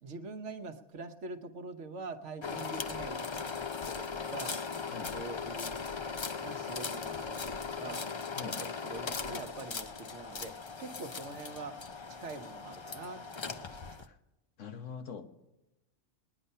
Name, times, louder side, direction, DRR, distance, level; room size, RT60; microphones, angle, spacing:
voice 1, 0.0-3.5 4.3-4.6 5.1-8.1 8.4-14.1, right 3 dB, 70° right, 8 dB, 1.3 m, -45 dB
sound 1, 2.4-14.0, left 5 dB, 45° left, 0.3 m, -39 dB
voice 2, 4.8-5.2 8.3-8.6 14.1-14.2 14.6-15.3, left 6 dB, 85° left, 7 dB, 1.5 m, -43 dB
21.0 x 10.0 x 5.5 m, 0.98 s
omnidirectional pair, 1.3 m